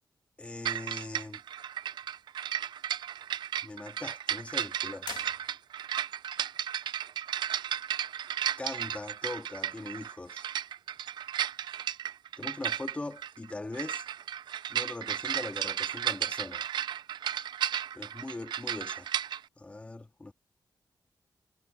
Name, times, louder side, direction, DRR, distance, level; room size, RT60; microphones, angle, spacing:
voice 1, 0.4-1.4 3.6-5.1 8.6-10.5 12.4-14.0 14.7-16.7 17.9-19.1 19.6-20.3, left 2 dB, 15° left, 1.8 m, -40 dB
sound 1, 0.7-19.4, right 10 dB, 75° right, 0.4 m, -34 dB
sound 2, 5.0-6.1, left 7 dB, 75° left, 1.9 m, -45 dB
wide cardioid pair, 155°, 8 cm